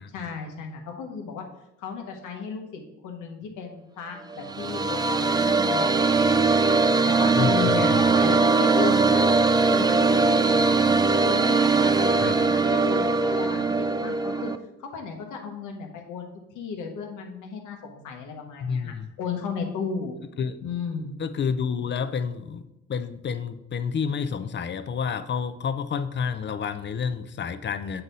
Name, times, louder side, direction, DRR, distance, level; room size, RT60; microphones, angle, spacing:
voice 1, 0.1-1.4 1.8-6.6 7.1-9.2 9.7-14.5 14.8-16.3 16.5-20.1 20.6-21.1, left 5 dB, 85° left, 3 dB, 1.2 m, -34 dB
sound 1, 4.3-14.6, right 4 dB, 15° right, 0.3 m, -21 dB
voice 2, 7.3-8.1 12.2-12.4 18.6-19.1 20.4-20.6 21.2-28.0, left 6 dB, 40° left, 11 dB, 0.5 m, -29 dB
7.8 x 4.0 x 4.0 m, 0.88 s
cardioid pair, 90°, 30 cm